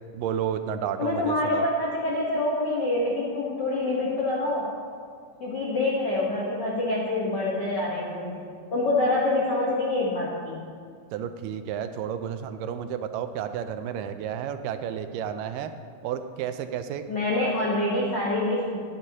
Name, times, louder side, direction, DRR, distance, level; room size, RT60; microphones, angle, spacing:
voice 1, 0.1-1.7 11.1-15.7 16.0-17.1, right 8 dB, 85° right, 9 dB, 2.2 m, -31 dB
voice 2, 1.0-4.7 5.4-10.6 17.1-18.8, left 2 dB, 70° left, -5 dB, 1.0 m, -26 dB
12.5 x 10.5 x 2.9 m, 2.1 s
omnidirectional pair, 3.9 m